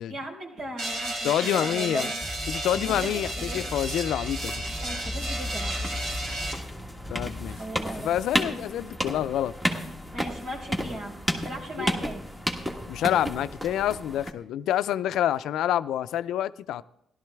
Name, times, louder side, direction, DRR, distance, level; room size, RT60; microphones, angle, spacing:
voice 1, 0.1-2.1 2.8-3.7 4.6-6.0 7.5-8.2 10.1-12.2, right 1 dB, 70° right, 4.4 m, -38 dB
sound 1, 0.8-6.5, right 1 dB, 90° right, 3.9 m, -33 dB
voice 2, 1.2-2.1 2.5-4.6 7.1-9.5 11.8-11.9 12.9-16.8, left 11 dB, 85° left, 0.4 m, -27 dB
sound 2, 2.2-7.6, left 1 dB, 5° left, 2.8 m, -37 dB
sound 3, 4.4-14.3, equal, 10° right, 1.5 m, -33 dB
16.5 x 12.0 x 3.4 m
cardioid pair, 110°, 0 cm